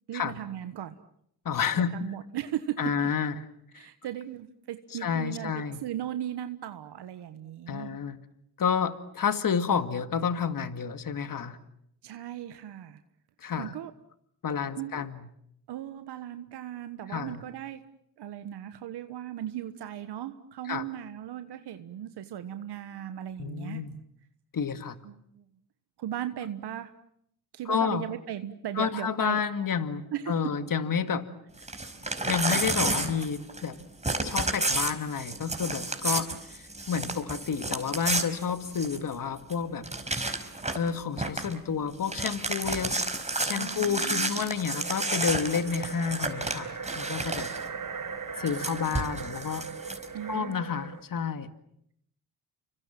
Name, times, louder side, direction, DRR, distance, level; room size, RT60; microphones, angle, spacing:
voice 1, 0.1-1.0 1.7-2.9 3.7-8.0 12.0-13.0 13.6-13.9 14.8-15.1 15.7-17.8 18.2-23.8 25.0-25.4 26.0-26.9 27.5-29.4 30.1-30.5 31.7-31.8 36.7-36.8 43.5-44.4 50.1-50.8, right 11 dB, 80° right, 9 dB, 1.4 m, -37 dB
voice 2, 1.4-1.9 2.8-3.3 3.7-3.9 5.0-5.8 7.7-8.2 8.6-11.6 13.4-13.7 14.4-15.3 17.1-17.4 20.7-20.8 23.4-23.9 24.5-25.0 27.7-28.0 28.8-31.2 32.3-33.8 34.2-39.8 40.8-43.0 43.4-47.5 48.4-49.6 50.3-51.5, left 6 dB, 55° left, 10 dB, 2.3 m, -30 dB
Crumpling crinkling / Tearing, 31.6-33.7 34.0-39.1 39.5-39.6 39.8-40.9 41.2-41.5 41.9-47.6 48.5-50.0, right 2 dB, 15° right, 4.7 m, -31 dB
sound 1, 44.6-51.0, right 5 dB, 50° right, 5.7 m, -39 dB
30.0 x 25.0 x 7.5 m, 0.72 s
cardioid pair, 65°, 40 cm